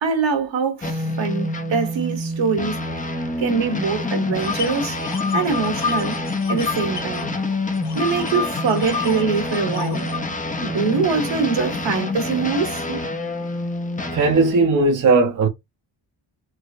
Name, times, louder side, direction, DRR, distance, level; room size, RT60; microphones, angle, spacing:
voice 1, 0.0-2.8 3.4-5.0 5.3-6.2 6.5-7.3 7.9-10.1 10.6-13.0, right 5 dB, 70° right, 1.2 m, -23 dB
sound 1, 0.8-14.6, left 2 dB, 20° left, 0.5 m, -27 dB
sound 2, 4.4-7.2 7.5-10.2, left 5 dB, 55° left, 1.0 m, -29 dB
voice 2, 14.1-15.5, right 3 dB, 40° right, 0.6 m, -17 dB
4.6 x 2.0 x 2.5 m
wide cardioid pair, 130°, 47 cm